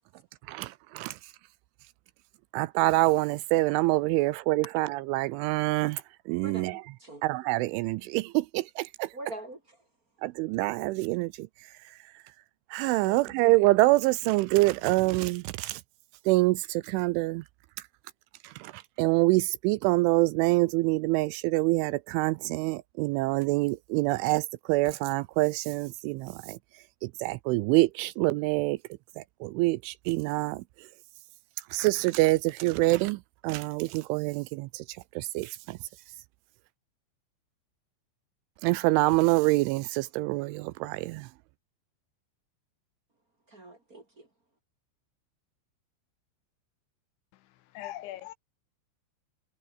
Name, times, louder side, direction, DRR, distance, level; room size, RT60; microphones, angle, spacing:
voice 1, 0.5-1.2 2.5-6.8 7.2-9.1 10.2-11.5 12.7-15.8 16.3-17.4 18.4-26.6 27.0-28.8 29.2-30.6 31.7-35.8 38.6-41.3, right 20 dB, 85° right, 2.9 m, -26 dB
voice 2, 6.4-7.2 9.1-9.8 13.0-13.4 43.5-44.3, right 2 dB, 25° right, 2.1 m, -44 dB
voice 3, 47.3-48.3, left 14 dB, 75° left, 3.1 m, -41 dB
omnidirectional pair, 5.8 m